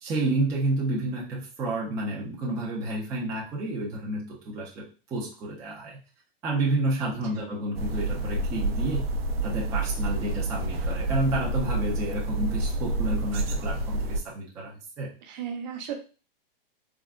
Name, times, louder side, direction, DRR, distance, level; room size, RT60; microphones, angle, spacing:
voice 1, 0.0-4.9 5.1-6.0 6.4-9.1 9.4-15.1, right 2 dB, 10° right, -5 dB, 0.3 m, -30 dB
sound 1, 7.7-14.2, right 2 dB, 85° right, 0.6 m, -28 dB
voice 2, 15.2-15.9, right 8 dB, 50° right, 4 dB, 0.7 m, -36 dB
3.5 x 2.1 x 2.3 m, 0.34 s
hypercardioid pair, 145°, 29 cm